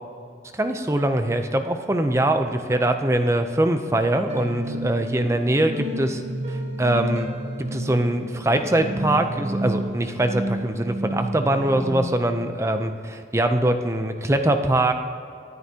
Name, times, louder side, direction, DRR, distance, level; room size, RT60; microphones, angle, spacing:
voice 1, 0.5-6.2 6.5-7.3 7.6-14.9, right 1 dB, 15° right, 7 dB, 0.5 m, -22 dB
sound 1, 4.3-12.2, right 1 dB, 35° right, 1.0 m, -31 dB
23.5 x 9.6 x 2.9 m, 2.5 s
head